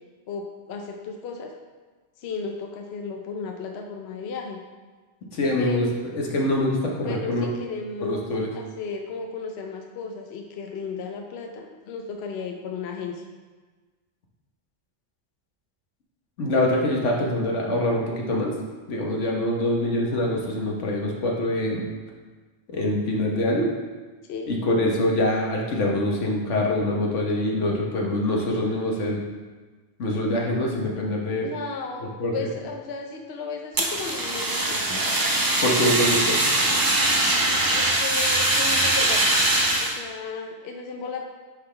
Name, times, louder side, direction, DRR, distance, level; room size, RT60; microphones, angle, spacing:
voice 1, 0.3-1.5 2.2-4.6 5.6-5.9 7.1-8.3 8.5-13.3 24.3-24.5 31.4-34.8 37.7-39.2 39.8-41.3, left 4 dB, 65° left, 2 dB, 0.8 m, -34 dB
voice 2, 5.3-5.8 6.1-7.5 8.0-8.5 16.4-18.5 18.9-21.8 22.7-23.7 24.5-29.2 30.0-31.5 32.2-32.3 35.6-36.4, left 1 dB, 85° left, -1 dB, 1.4 m, -24 dB
Fire, 33.7-40.0, right 1 dB, 25° right, 0.5 m, -22 dB
9.4 x 3.9 x 3.3 m, 1.3 s
omnidirectional pair, 1.2 m